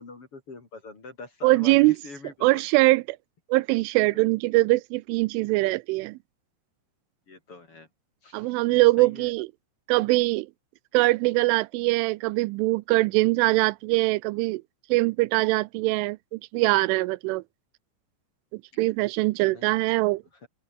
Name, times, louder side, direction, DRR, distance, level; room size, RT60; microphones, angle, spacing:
voice 1, 0.0-2.9 4.0-4.2 7.3-7.9 8.2-9.4 19.5-19.8 20.3-20.5, left 3 dB, 30° left, 3.8 m, -44 dB
voice 2, 1.4-2.0 2.4-3.0 3.5-6.2 8.3-9.5 9.9-10.5 10.9-14.6 14.9-17.4 18.5-20.2, right 22 dB, 85° right, 3.0 m, -22 dB
open air
omnidirectional pair, 5.6 m